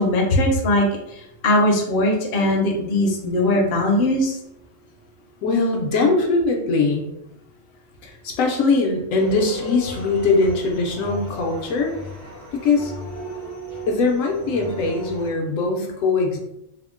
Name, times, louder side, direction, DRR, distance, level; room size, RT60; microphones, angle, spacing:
voice 1, 0.0-4.4, left 1 dB, 60° left, 0 dB, 0.8 m, -20 dB
voice 2, 5.4-7.1 8.0-11.9 12.5-12.9 13.9-16.4, left 3 dB, 80° left, 1 dB, 1.0 m, -21 dB
sound 1, 9.2-15.3, left 1 dB, 60° right, 1.7 m, -36 dB
3.5 x 2.0 x 2.4 m, 0.82 s
omnidirectional pair, 1.4 m